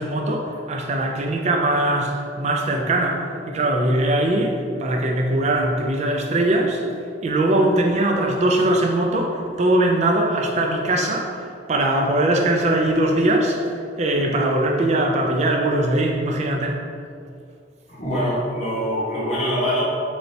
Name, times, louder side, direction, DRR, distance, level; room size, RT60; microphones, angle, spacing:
voice 1, 0.0-6.9 7.2-16.8, right 1 dB, 40° right, 1 dB, 0.4 m, -21 dB
voice 2, 17.9-19.8, equal, 40° left, -8 dB, 1.1 m, -24 dB
3.2 x 2.6 x 4.0 m, 2.3 s
head